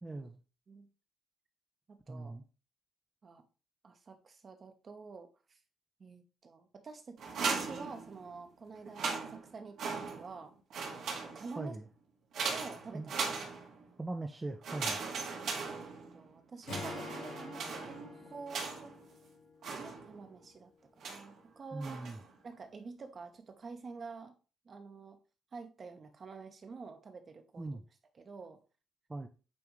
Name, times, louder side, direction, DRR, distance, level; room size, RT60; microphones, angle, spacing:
voice 1, 0.0-0.4 2.1-2.5 11.6-11.8 12.9-13.1 14.0-15.0 21.7-22.2 27.6-27.8 29.1-29.3, right 2 dB, 20° right, 4 dB, 0.6 m, -40 dB
voice 2, 1.9-2.3 3.2-3.4 3.8-5.6 6.0-10.5 11.1-11.8 12.5-13.1 15.0-15.2 15.7-19.0 19.8-22.1 22.4-24.3 24.6-25.2 25.5-27.8 28.2-28.6, right 4 dB, 45° right, 6 dB, 1.1 m, -48 dB
sound 1, 7.2-8.4 8.8-10.4 10.7-11.7 12.3-13.9 14.6-16.3 16.6-19.0 19.6-20.3 21.0-21.4 21.8-22.3, right 4 dB, 75° right, 1.8 m, -39 dB
Acoustic guitar / Strum, 16.7-20.1, left 4 dB, 80° left, 3.5 m, -47 dB
8.5 x 3.5 x 3.1 m, 0.34 s
cardioid pair, 90°, 0 cm